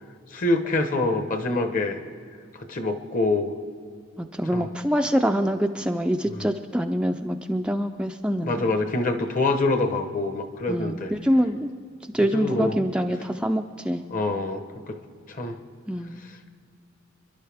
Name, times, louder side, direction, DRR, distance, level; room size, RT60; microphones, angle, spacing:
voice 1, 0.3-2.0 2.7-3.5 4.5-4.7 6.3-6.5 8.4-11.1 12.2-12.8 14.1-15.0 15.3-15.6, left 2 dB, 40° left, 7 dB, 1.1 m, -25 dB
voice 2, 4.2-8.6 10.7-11.7 12.1-14.0 15.9-16.2, equal, 5° right, 4 dB, 0.4 m, -25 dB
27.0 x 11.0 x 3.5 m, 2.3 s
head